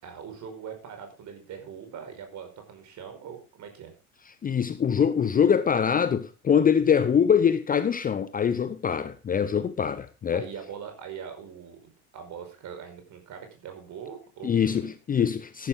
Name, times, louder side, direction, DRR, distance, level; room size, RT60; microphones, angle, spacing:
voice 1, 0.0-3.9 10.3-14.9, right 7 dB, 40° right, 5.2 m, -42 dB
voice 2, 4.4-10.4 14.4-15.7, left 7 dB, 20° left, 0.8 m, -23 dB
14.0 x 11.5 x 3.7 m
figure-of-eight pair, 70°, 43 cm